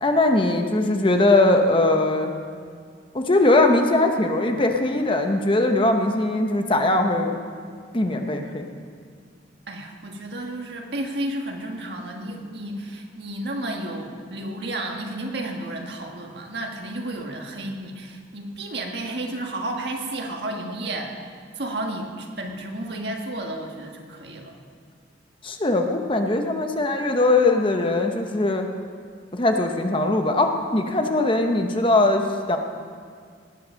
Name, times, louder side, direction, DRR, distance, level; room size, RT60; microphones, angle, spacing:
voice 1, 0.0-2.3 3.1-7.4 7.9-8.7 25.4-28.7 29.3-32.6, left 2 dB, 25° left, 4 dB, 0.9 m, -20 dB
voice 2, 9.7-21.1 21.6-24.5, right 1 dB, 60° right, 1 dB, 1.7 m, -32 dB
18.5 x 7.9 x 6.3 m, 2.1 s
head